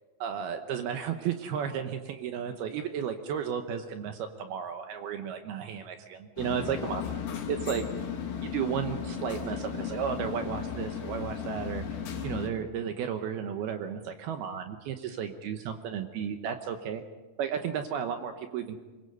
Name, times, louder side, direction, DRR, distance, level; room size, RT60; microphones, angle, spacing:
voice 1, 0.2-7.0 7.5-7.8 8.4-11.9 12.2-17.0 17.4-18.8, right 8 dB, 70° right, 6 dB, 2.6 m, -33 dB
sound 1, 6.4-12.5, left 7 dB, 55° left, 4.1 m, -35 dB
26.0 x 22.0 x 5.4 m, 1.2 s
omnidirectional pair, 5.1 m